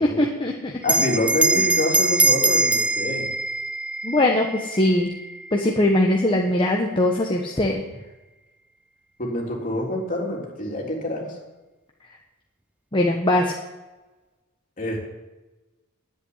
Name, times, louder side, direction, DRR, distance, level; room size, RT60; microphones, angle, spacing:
voice 1, 0.0-0.7 1.5-1.7 4.0-5.1 5.5-7.8 12.9-13.5, left 1 dB, 25° left, 0 dB, 1.2 m, -21 dB
voice 2, 0.8-3.3 9.2-11.4 14.8-15.0, left 1 dB, 40° left, -2 dB, 3.6 m, -26 dB
Bell, 0.8-5.7, right 2 dB, 5° right, 0.3 m, -23 dB
10.5 x 8.4 x 9.7 m, 1.1 s
head